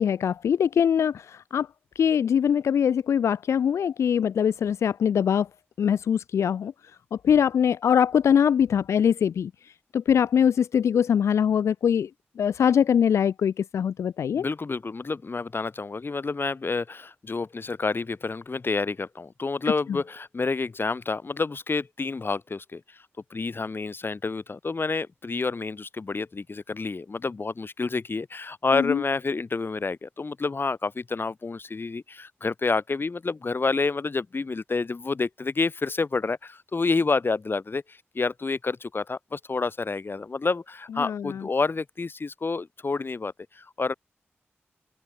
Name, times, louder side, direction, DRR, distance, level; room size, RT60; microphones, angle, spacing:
voice 1, 0.0-1.7 2.0-5.5 5.8-6.7 7.2-9.5 9.9-12.1 12.4-14.4 28.7-29.0 41.0-41.4, left 8 dB, 85° left, 0.3 m, -22 dB
voice 2, 14.3-23.0 23.3-43.9, left 4 dB, 50° left, 1.3 m, -29 dB
open air
cardioid pair, 40°, 5 cm